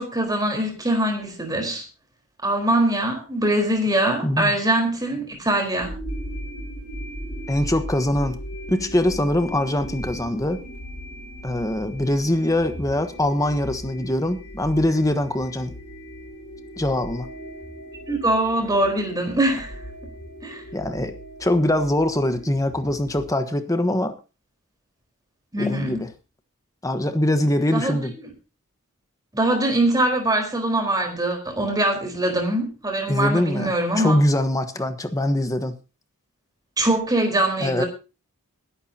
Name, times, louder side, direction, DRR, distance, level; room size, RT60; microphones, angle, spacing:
voice 1, 0.0-1.8 2.4-5.9 18.1-19.7 20.4-20.6 25.5-26.0 27.7-28.0 29.3-34.2 36.8-37.9, right 1 dB, 15° right, 3 dB, 4.3 m, -23 dB
sound 1, 5.8-23.3, equal, 90° left, 6.8 m, -37 dB
voice 2, 7.5-8.4 8.7-10.6 11.4-15.7 16.8-17.3 20.7-21.1 21.4-24.2 25.6-26.1 26.8-28.1 33.1-35.7 37.6-37.8, left 1 dB, 15° left, 9 dB, 1.2 m, -23 dB
21.0 x 11.5 x 2.9 m, 0.31 s
head